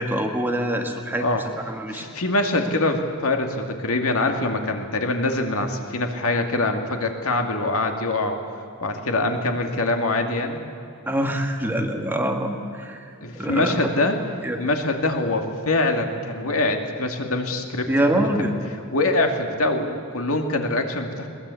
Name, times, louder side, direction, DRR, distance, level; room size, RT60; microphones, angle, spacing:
voice 1, 0.0-1.2 1.7-2.1 11.1-13.8 14.4-14.6 17.9-18.5, right 1 dB, 10° right, 3 dB, 1.8 m, -25 dB
voice 2, 1.9-8.4 8.8-10.6 13.2-14.2 14.6-17.9 18.1-18.5 18.9-21.3, left 2 dB, 70° left, 4 dB, 2.4 m, -24 dB
22.0 x 20.0 x 8.5 m, 2.6 s
head